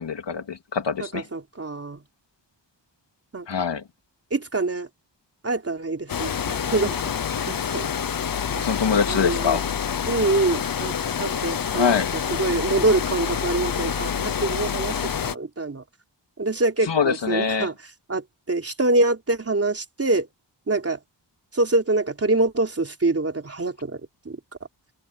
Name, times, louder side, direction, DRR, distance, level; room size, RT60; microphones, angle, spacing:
voice 1, 0.0-1.2 3.5-3.8 8.6-9.6 11.7-12.1 16.9-17.7, left 6 dB, 75° left, 2.3 m, -24 dB
voice 2, 1.1-2.0 3.3-3.7 4.3-4.9 5.4-7.1 7.5-7.9 8.5-8.6 9.1-9.6 10.1-10.9 11.2-15.8 16.4-17.7 18.1-20.3 20.7-21.0 21.5-24.0 24.3-24.4, right 2 dB, 35° right, 3.7 m, -25 dB
Water, 6.1-15.4, left 8 dB, 50° left, 0.8 m, -27 dB
wide cardioid pair, 140°, 43 cm